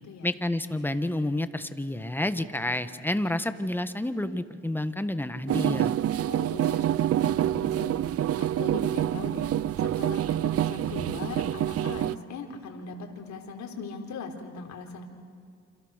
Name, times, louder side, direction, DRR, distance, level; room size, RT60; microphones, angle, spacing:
voice 1, 0.2-6.0, left 1 dB, 5° left, 11 dB, 1.3 m, -29 dB
sound 1, 5.5-12.2, right 11 dB, 50° right, 0.5 m, -27 dB
voice 2, 6.3-8.0 8.4-9.5 9.8-15.0, left 4 dB, 65° left, 2 dB, 4.1 m, -40 dB
29.0 x 27.0 x 6.6 m, 2.3 s
cardioid pair, 90°, 30 cm